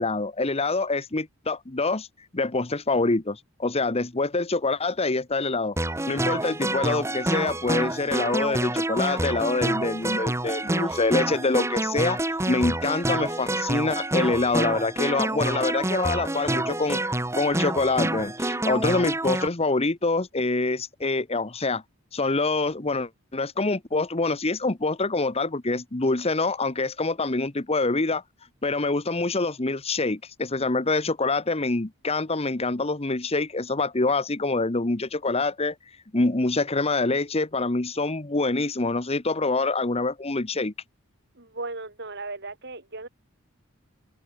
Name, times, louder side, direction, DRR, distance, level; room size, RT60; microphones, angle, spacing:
voice 1, 0.0-2.1 2.3-5.8 6.1-17.0 17.3-21.8 22.1-28.2 28.6-35.7 36.1-40.7, left 3 dB, 30° left, 1.1 m, -25 dB
sound 1, 5.8-19.5, right 1 dB, 15° right, 1.7 m, -27 dB
voice 2, 41.3-43.1, right 3 dB, 55° right, 6.4 m, -36 dB
head